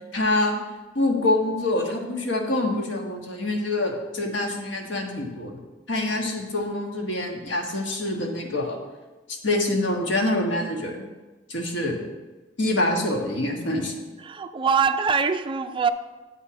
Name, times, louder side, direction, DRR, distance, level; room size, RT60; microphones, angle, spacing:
voice 1, 0.1-0.6 0.9-5.6 5.9-8.8 9.3-11.0 11.5-12.0 12.6-13.9, left 2 dB, 75° left, 1.4 m, -25 dB
voice 2, 14.2-15.9, right 6 dB, 25° right, 0.4 m, -23 dB
8.1 x 5.7 x 6.3 m
head